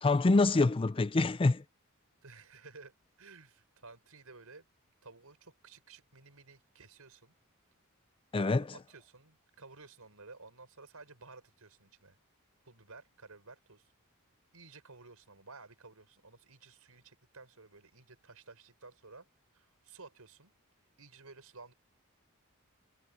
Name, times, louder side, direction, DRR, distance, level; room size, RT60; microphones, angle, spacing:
voice 1, 0.0-1.6 8.3-8.7, left 3 dB, 25° left, 0.5 m, -26 dB
voice 2, 2.2-2.9 3.2-4.6 5.0-7.4 8.6-12.2 12.6-13.9 14.5-19.3 19.5-20.5 21.0-21.7, right 3 dB, 80° right, 5.4 m, -54 dB
head